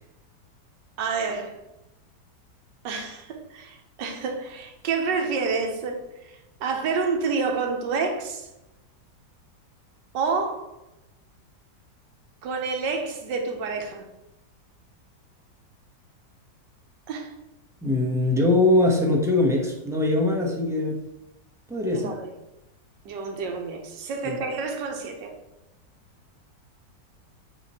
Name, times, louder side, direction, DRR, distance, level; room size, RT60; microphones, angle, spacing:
voice 1, 1.0-1.6 2.8-8.5 10.1-10.8 12.4-14.1 17.1-17.3 21.8-22.3 23.0-25.3, right 4 dB, 80° right, 1.5 m, -29 dB
voice 2, 17.8-21.0 21.7-22.1 24.2-24.4, left 2 dB, 5° right, 0.6 m, -22 dB
7.7 x 3.1 x 4.1 m
omnidirectional pair, 1.9 m